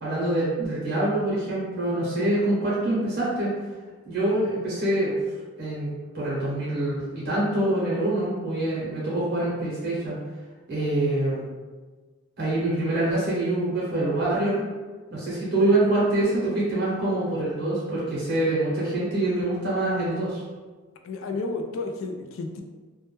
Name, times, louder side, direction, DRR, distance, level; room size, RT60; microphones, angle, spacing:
voice 1, 0.0-3.5 4.1-5.1 5.6-10.2 10.7-11.4 12.4-14.6 15.1-20.4, right 1 dB, 50° right, -7 dB, 0.7 m, -25 dB
voice 2, 21.0-22.6, left 3 dB, 70° left, 4 dB, 0.3 m, -31 dB
2.1 x 2.1 x 2.9 m, 1.4 s
head